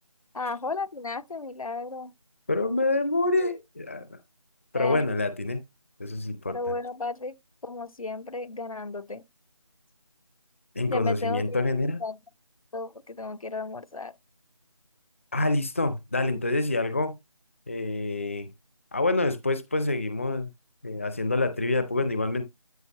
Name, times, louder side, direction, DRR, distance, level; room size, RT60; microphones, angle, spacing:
voice 1, 0.3-2.1 4.7-5.0 6.5-7.3 7.6-9.2 10.9-11.6 12.0-12.2 12.7-14.2, left 3 dB, 80° left, 0.8 m, -34 dB
voice 2, 2.5-4.1 4.7-5.6 6.0-6.6 10.8-12.0 15.3-17.2 17.7-18.5 18.9-20.5 20.8-22.5, left 2 dB, 25° left, 0.5 m, -26 dB
13.0 x 4.7 x 2.9 m
figure-of-eight pair, 170°, 18 cm